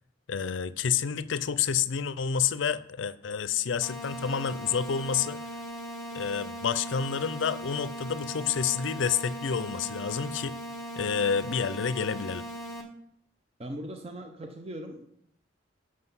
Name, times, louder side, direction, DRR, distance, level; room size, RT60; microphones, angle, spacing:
voice 1, 0.3-5.4 6.1-10.6 11.0-12.4, left 7 dB, 75° left, 15 dB, 0.5 m, -29 dB
sound 1, 3.8-12.8, right 1 dB, ahead, 1.3 m, -39 dB
voice 2, 13.6-15.1, right 1 dB, 30° right, 5 dB, 0.6 m, -39 dB
7.7 x 6.3 x 5.5 m, 0.74 s
head